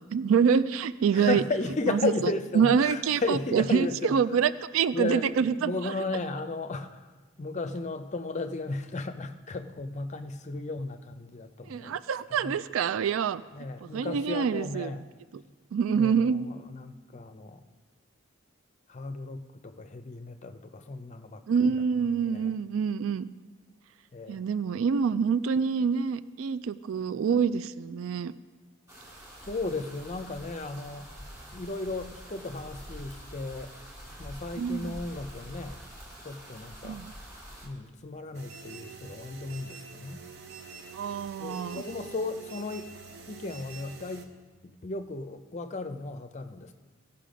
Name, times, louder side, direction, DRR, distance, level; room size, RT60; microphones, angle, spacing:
voice 1, 0.1-1.4 1.9-2.1 2.6-5.9 11.7-13.4 13.9-14.9 15.7-16.5 21.5-23.3 24.3-28.3 34.6-35.0 36.8-37.0 40.9-41.8, right 6 dB, 80° right, 15 dB, 0.3 m, -26 dB
voice 2, 1.1-4.4 4.9-7.1 7.4-12.0 12.3-12.6 13.5-15.0 15.9-17.6 18.9-21.8 22.3-22.5 24.1-24.4 29.5-31.1 31.5-33.7 34.2-35.8 36.2-37.0 37.6-40.2 41.4-42.9 43.3-44.3 44.6-46.7, left 3 dB, 35° left, 9 dB, 0.5 m, -35 dB
sound 1, 28.9-37.7, equal, 15° right, 2.2 m, -46 dB
sound 2, 38.3-44.3, right 5 dB, 50° right, 0.9 m, -46 dB
16.5 x 5.7 x 5.1 m, 1.3 s
head